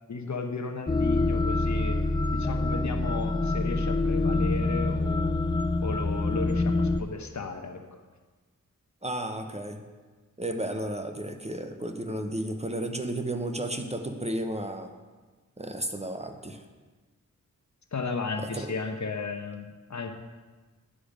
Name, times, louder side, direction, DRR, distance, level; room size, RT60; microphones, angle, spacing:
voice 1, 0.1-5.3 5.8-8.0 17.9-20.1, left 4 dB, 55° left, 4 dB, 0.9 m, -35 dB
sound 1, 0.9-7.0, left 2 dB, 15° left, 0.3 m, -26 dB
voice 2, 9.0-9.8 10.4-14.9 15.6-16.6 18.5-18.7, right 1 dB, 20° right, 6 dB, 0.7 m, -33 dB
10.0 x 5.0 x 5.1 m, 1.3 s
wide cardioid pair, 60°, 33 cm